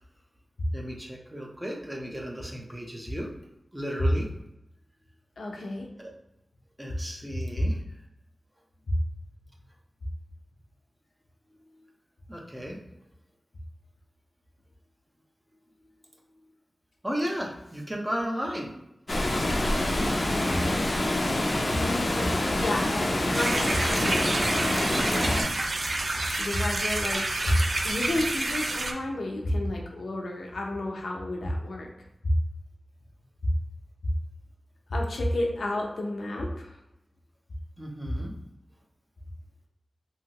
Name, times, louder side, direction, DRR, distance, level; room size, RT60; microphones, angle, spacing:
voice 1, 0.7-3.3 3.7-4.3 6.0-6.1 6.8-7.8 12.3-12.8 17.0-18.7 37.8-38.3, equal, 15° right, -1 dB, 0.7 m, -34 dB
voice 2, 5.4-5.9 7.6-7.7 20.7-24.5 24.7-25.4 26.4-31.9 33.4-33.5 34.9-36.7, left 1 dB, 85° left, -1 dB, 0.6 m, -31 dB
Water, 19.1-25.4, left 1 dB, 45° left, 0.5 m, -26 dB
sound 1, 23.3-28.9, right 2 dB, 55° right, 0.4 m, -29 dB
2.9 x 2.7 x 2.8 m, 0.86 s
wide cardioid pair, 75°, 0 cm